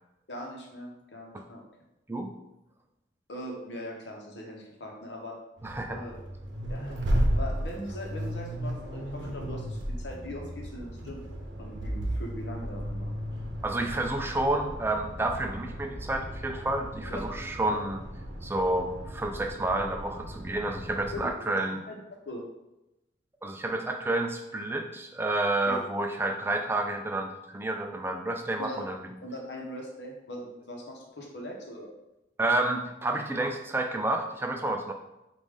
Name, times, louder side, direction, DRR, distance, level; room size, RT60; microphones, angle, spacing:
voice 1, 0.3-1.6 3.3-5.4 5.9-6.2 6.7-11.2 11.6-13.1 17.1-17.2 17.7-17.8 21.1-21.9 22.2-22.4 25.7-25.8 28.6-28.8 29.2-32.0, left 1 dB, 75° left, 0 dB, 0.9 m, -40 dB
voice 2, 5.6-6.0 13.6-18.0 18.4-21.8 23.4-29.1 32.4-34.9, right 2 dB, 15° right, 4 dB, 0.3 m, -30 dB
Accelerating revving vroom, 5.6-21.3, equal, 85° right, 0.7 m, -34 dB
4.8 x 2.5 x 3.6 m, 0.92 s
head